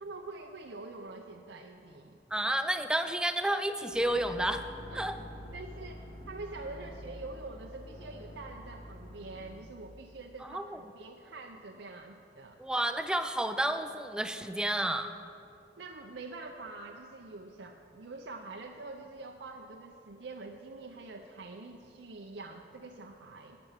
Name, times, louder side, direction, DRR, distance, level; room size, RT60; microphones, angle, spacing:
voice 1, 0.0-2.5 4.3-4.4 4.9-5.0 5.5-12.6 15.8-23.6, right 3 dB, 90° right, 2 dB, 0.7 m, -45 dB
voice 2, 2.3-4.6 4.9-5.2 10.4-10.8 12.6-15.1, right 1 dB, 5° right, 8 dB, 0.4 m, -31 dB
sound 1, 3.9-9.6, equal, 30° left, 2.7 m, -47 dB
10.5 x 9.3 x 7.3 m, 2.6 s
head